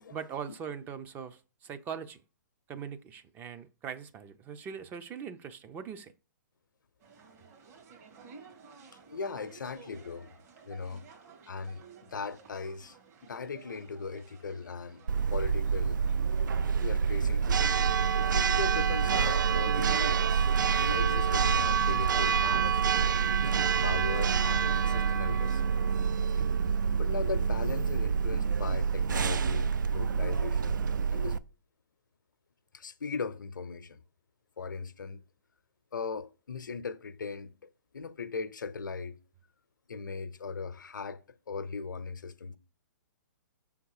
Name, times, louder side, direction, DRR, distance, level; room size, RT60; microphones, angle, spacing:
voice 1, 0.1-2.2 2.7-6.1, right 7 dB, 20° right, 0.4 m, -41 dB
sound 1, 7.0-17.8, right 5 dB, 50° right, 1.9 m, -55 dB
voice 2, 9.1-10.3 10.7-11.8 12.1-13.0 13.2-15.0 15.3-16.0 16.8-17.7 18.3-20.5 20.8-23.2 23.8-25.6 26.3-26.4 27.0-31.4 32.7-34.0 34.6-35.2 35.9-39.2 39.9-41.2 41.5-42.6, left 4 dB, 85° left, 0.7 m, -38 dB
Church bell, 15.1-31.4, right 6 dB, 80° right, 0.4 m, -27 dB
6.2 x 3.5 x 4.8 m
hypercardioid pair, 140°, 10 cm